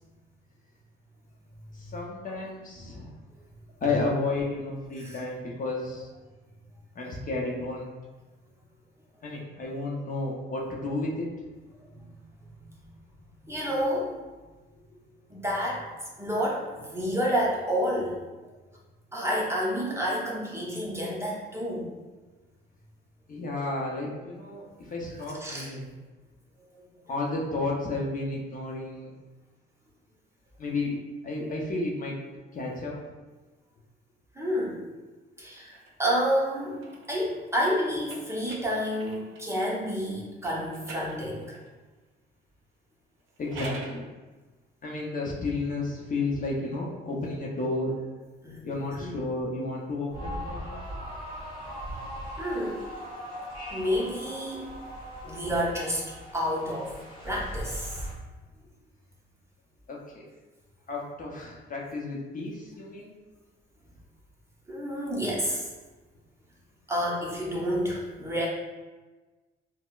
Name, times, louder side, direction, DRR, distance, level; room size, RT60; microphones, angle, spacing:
voice 1, 1.7-3.1 3.8-6.1 6.9-7.9 9.2-11.3 23.3-25.9 27.1-29.1 30.6-32.2 32.5-33.0 43.4-44.1 44.8-47.9 48.6-50.8 55.2-55.3 59.9-60.3 60.9-63.1, left 2 dB, 45° left, -2 dB, 0.7 m, -32 dB
voice 2, 11.9-12.8 13.4-14.1 15.3-18.1 19.1-21.8 25.4-25.7 34.3-34.8 35.4-36.8 37.1-41.5 48.4-48.6 48.9-49.1 52.4-52.8 53.7-54.7 55.3-56.0 56.3-57.0 57.2-58.0 64.7-65.7 66.9-68.5, equal, 15° right, -5 dB, 0.8 m, -29 dB
sound 1, 35.5-39.6 40.4-41.8 43.2-44.0, right 3 dB, 90° right, 0.5 m, -46 dB
sound 2, 50.1-58.1, equal, 25° left, 1.3 m, -39 dB
4.1 x 2.1 x 2.4 m, 1.3 s
cardioid pair, 90°, 20 cm